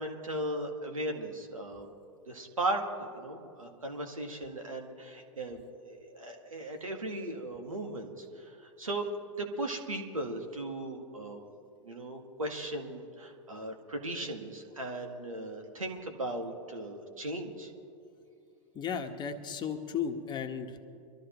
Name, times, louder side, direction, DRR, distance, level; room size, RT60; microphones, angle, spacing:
voice 1, 0.0-1.9 2.3-9.1 9.4-11.4 11.8-17.7, right 1 dB, 90° right, 4 dB, 1.7 m, -37 dB
voice 2, 18.7-20.8, left 7 dB, 25° left, 5 dB, 1.2 m, -35 dB
24.0 x 13.0 x 3.0 m, 2.7 s
hypercardioid pair, 100°, 17 cm